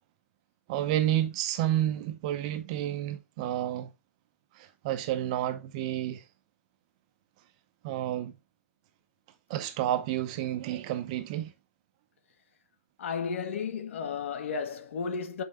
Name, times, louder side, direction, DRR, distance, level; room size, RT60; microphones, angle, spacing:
voice 1, 0.7-3.9 4.5-6.2 7.8-8.3 9.5-11.5, right 12 dB, 25° right, 0.7 m, -30 dB
voice 2, 13.0-15.4, left 6 dB, 55° left, 1.5 m, -33 dB
7.6 x 5.5 x 3.3 m
hypercardioid pair, 170°, 8 cm